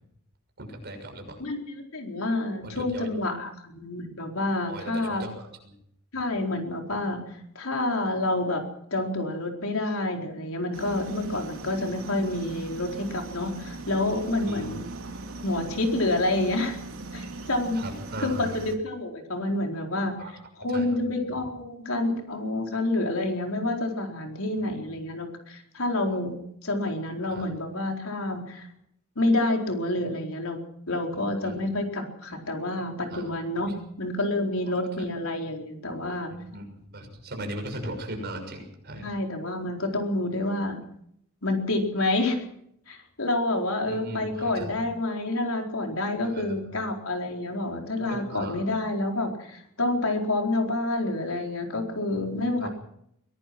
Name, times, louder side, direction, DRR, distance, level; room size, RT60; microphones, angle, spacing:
voice 1, 0.6-1.4 2.6-3.1 4.7-5.4 14.4-14.6 17.7-18.6 20.2-20.3 20.7-20.9 21.1-21.3 27.3-27.4 31.4-31.6 33.1-33.3 36.5-39.1 43.8-44.7 46.2-46.7 48.0-48.6 52.1-52.7, right 1 dB, 50° right, 4 dB, 6.4 m, -38 dB
voice 2, 1.4-5.2 6.1-8.6 8.9-14.9 15.4-16.8 17.1-17.8 18.2-20.1 20.6-28.7 29.2-30.6 30.9-36.3 39.0-40.8 41.4-42.4 42.9-52.7, left 2 dB, 75° left, 2 dB, 4.3 m, -28 dB
sound 1, 10.7-18.8, right 2 dB, 70° right, 3.6 m, -39 dB
23.5 x 18.0 x 6.1 m, 0.72 s
head